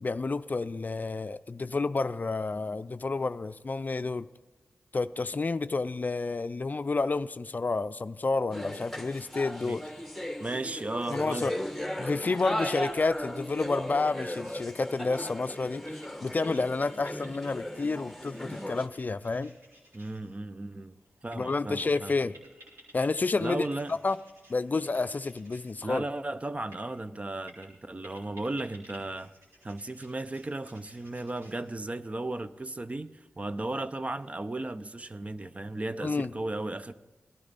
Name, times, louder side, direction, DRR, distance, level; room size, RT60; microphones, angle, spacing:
voice 1, 0.0-4.3 4.9-9.8 11.1-11.5 12.0-19.5 21.3-22.4 22.9-23.7 24.0-24.2 24.5-26.0 36.0-36.3, left 3 dB, 45° left, 0.4 m, -30 dB
sound 1, 8.5-18.9, equal, ahead, 1.2 m, -37 dB
voice 2, 10.4-11.5 19.9-21.0 21.2-22.1 23.4-24.0 25.8-29.3 29.6-36.9, right 2 dB, 35° right, 0.6 m, -35 dB
sound 2, 12.7-32.2, right 1 dB, 85° right, 3.9 m, -58 dB
18.5 x 12.0 x 4.0 m
cardioid pair, 40°, 4 cm